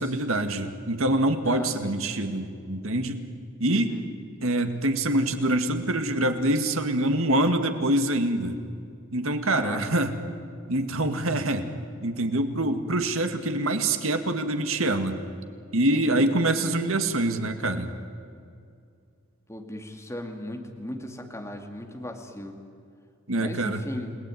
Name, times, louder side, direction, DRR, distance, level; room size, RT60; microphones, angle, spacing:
voice 1, 0.0-3.2 3.6-3.9 4.4-8.6 9.1-10.1 10.7-11.6 12.0-15.2 15.7-17.9 23.3-23.8, right 1 dB, 75° right, 7 dB, 2.1 m, -25 dB
voice 2, 1.4-2.0 3.7-4.1 9.5-9.8 15.9-16.3 19.5-22.6 23.4-24.2, left 1 dB, 15° left, 3 dB, 2.5 m, -36 dB
30.0 x 19.5 x 9.4 m, 2.4 s
head